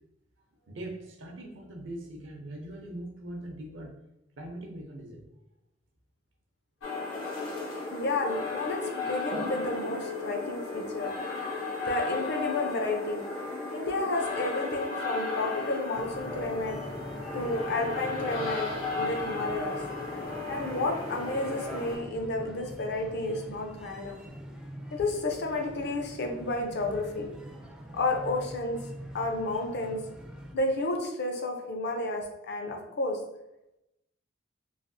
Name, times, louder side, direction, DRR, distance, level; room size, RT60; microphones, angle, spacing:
voice 1, 0.6-4.0 4.4-5.3 7.6-8.0 9.6-9.8 10.2-10.3, right 1 dB, 70° right, 2 dB, 0.6 m, -42 dB
sound 1, 6.8-22.0, left 3 dB, 85° left, 0.8 m, -35 dB
voice 2, 7.9-11.1 11.8-13.2 13.7-16.8 17.3-19.8 20.5-24.2 24.9-27.3 27.9-28.8 29.1-30.0 30.5-33.2, left 2 dB, 60° left, 3 dB, 0.5 m, -31 dB
sound 2, 15.9-30.5, equal, 5° right, 0.3 m, -44 dB
3.2 x 2.3 x 2.6 m, 0.88 s
head